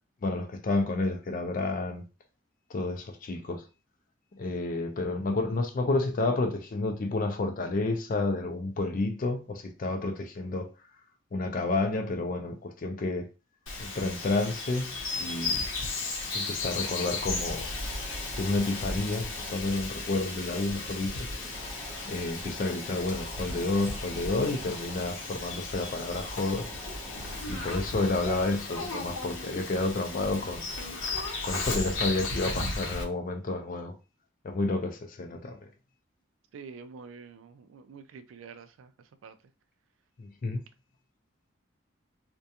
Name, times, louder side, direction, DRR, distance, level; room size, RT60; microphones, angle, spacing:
voice 1, 0.2-2.0 2.7-3.6 4.4-10.7 11.3-13.3 13.8-15.6 16.3-17.7 18.4-21.3 22.0-26.7 27.5-30.7 31.4-34.0 34.4-35.6 40.2-40.6, left 2 dB, 40° left, 0.4 m, -30 dB
Bird vocalization bird call bird song, 13.7-33.0, left 3 dB, 75° left, 0.7 m, -35 dB
sound 1, 15.0-28.2, right 1 dB, 5° right, 0.5 m, -48 dB
voice 2, 36.5-39.4, right 5 dB, 75° right, 0.3 m, -47 dB
2.4 x 2.2 x 2.7 m
head